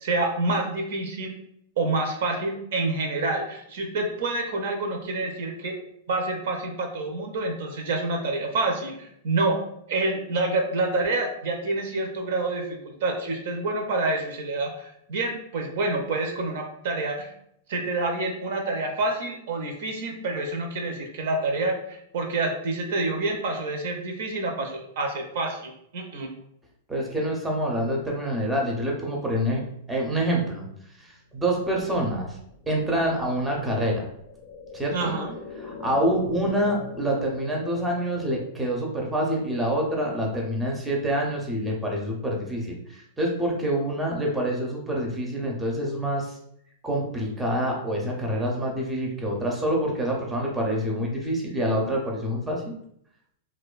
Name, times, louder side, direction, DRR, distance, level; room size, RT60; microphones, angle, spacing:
voice 1, 0.0-1.4 1.8-5.7 6.1-9.6 9.9-17.3 17.7-26.3 34.9-35.3, right 2 dB, 65° right, 3 dB, 0.5 m, -27 dB
voice 2, 26.9-30.6 31.0-32.4 32.7-34.1 34.7-35.1 35.6-46.3 46.8-52.6, right 1 dB, 10° right, -1 dB, 0.5 m, -26 dB
sound 1, 31.3-41.1 41.4-41.5, left 5 dB, 65° left, 0.4 m, -43 dB
2.5 x 2.1 x 2.4 m, 0.71 s
hypercardioid pair, 145°, 0 cm